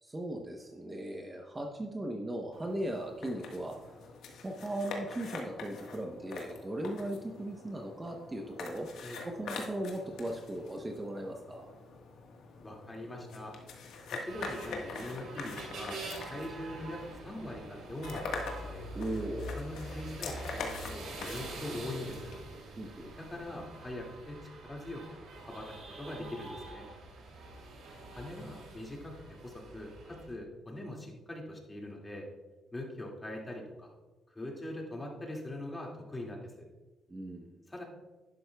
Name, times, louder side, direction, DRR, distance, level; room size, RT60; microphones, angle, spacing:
voice 1, 0.0-4.1 4.4-8.9 9.2-11.7 18.9-19.6 22.8-23.1 37.1-37.5, right 1 dB, 20° right, 2 dB, 0.9 m, -38 dB
sound 1, 2.5-22.4, left 4 dB, 80° left, 1.4 m, -44 dB
voice 2, 12.6-13.5 14.1-16.0 16.3-18.9 19.6-22.3 23.2-25.0 25.5-26.8 28.1-32.3 32.7-33.9 34.3-36.7 37.7-37.8, left 1 dB, 20° left, -1 dB, 2.2 m, -42 dB
sound 2, 14.2-30.3, right 2 dB, 80° right, 2.8 m, -45 dB
11.5 x 11.0 x 2.3 m, 1.2 s
cardioid pair, 90°, 0 cm